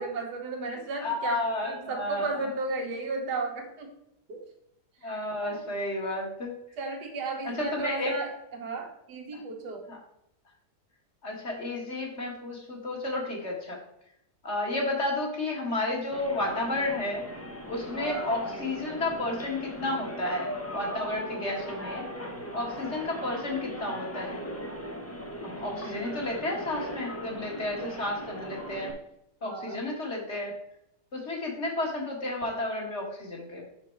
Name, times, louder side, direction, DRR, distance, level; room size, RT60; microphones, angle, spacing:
voice 1, 0.0-3.9 4.3-4.5 5.0-5.6 6.8-9.9 17.7-18.0 22.5-23.0 29.4-29.8, right 3 dB, 80° right, 3 dB, 1.8 m, -35 dB
voice 2, 1.0-2.2 5.0-6.5 7.6-8.1 11.2-13.8 14.4-17.2 17.7-22.0 22.5-24.4 25.4-28.9 29.4-30.5 31.1-33.6, left 2 dB, 45° left, -1 dB, 2.0 m, -32 dB
sound 1, 16.1-28.9, equal, 15° left, 0.5 m, -38 dB
6.8 x 5.9 x 4.5 m, 0.79 s
omnidirectional pair, 1.7 m